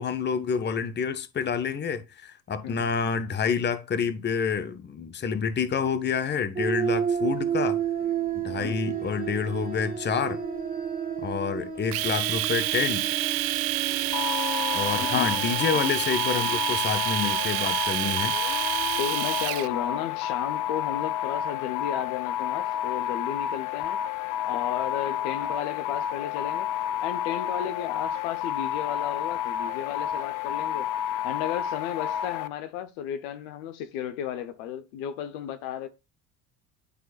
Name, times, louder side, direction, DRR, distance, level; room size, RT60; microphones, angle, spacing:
voice 1, 0.0-7.8 8.3-10.4 11.2-13.1 14.7-18.4, left 6 dB, 25° left, 0.8 m, -28 dB
sound 1, 6.6-16.9 18.3-19.0, right 7 dB, 20° right, 1.2 m, -32 dB
voice 2, 8.6-9.0 15.0-15.5 19.0-24.0 24.4-26.7 27.0-30.9 31.2-35.9, left 10 dB, 70° left, 0.9 m, -34 dB
Domestic sounds home sounds, 11.9-19.7, right 19 dB, 55° right, 0.5 m, -28 dB
sound 2, 14.1-32.5, left 10 dB, 45° left, 0.5 m, -30 dB
11.5 x 3.8 x 2.4 m
hypercardioid pair, 65°, 47 cm